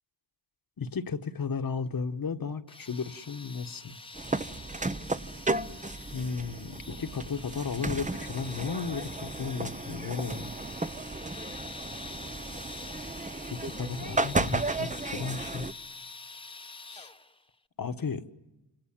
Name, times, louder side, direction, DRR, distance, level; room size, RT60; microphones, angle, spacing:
voice 1, 0.8-4.0 6.1-10.5 13.5-15.7 16.9-17.1 17.8-18.2, left 5 dB, 45° left, 1.7 m, -34 dB
sound 1, 2.7-17.4, left 3 dB, 10° left, 1.2 m, -46 dB
sound 2, 4.1-15.7, right 2 dB, 15° right, 1.0 m, -34 dB
29.0 x 27.0 x 7.6 m
cardioid pair, 65°, 46 cm